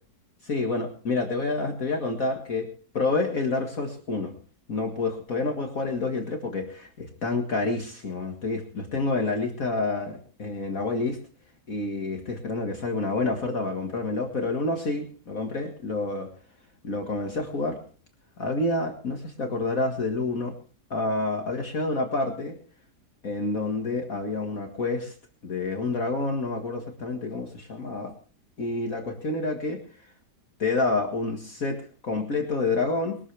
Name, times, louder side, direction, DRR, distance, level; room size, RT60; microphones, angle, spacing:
voice 1, 0.4-2.7 2.9-4.3 4.7-11.2 11.7-16.3 16.8-17.8 18.4-20.5 20.9-22.6 23.2-25.1 25.4-28.1 28.6-29.8 30.6-33.3, left 3 dB, 50° left, 3 dB, 2.2 m, -28 dB
21.5 x 13.5 x 3.4 m, 0.40 s
omnidirectional pair, 1.9 m